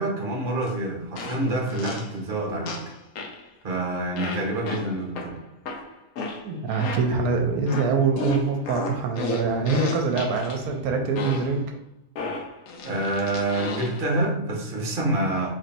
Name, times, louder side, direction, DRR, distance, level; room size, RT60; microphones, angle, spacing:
voice 1, 0.0-2.7 3.6-5.4 12.8-15.5, right 1 dB, 40° right, -1 dB, 0.9 m, -27 dB
sound 1, 0.6-0.7 1.2-2.2 2.7-3.4 4.2-7.3 7.7-10.6 11.2-11.6 12.2-14.1, left 3 dB, 75° left, 1.1 m, -34 dB
voice 2, 6.4-11.7, right 4 dB, 80° right, 3 dB, 1.1 m, -24 dB
3.1 x 2.6 x 4.0 m, 0.77 s
omnidirectional pair, 1.6 m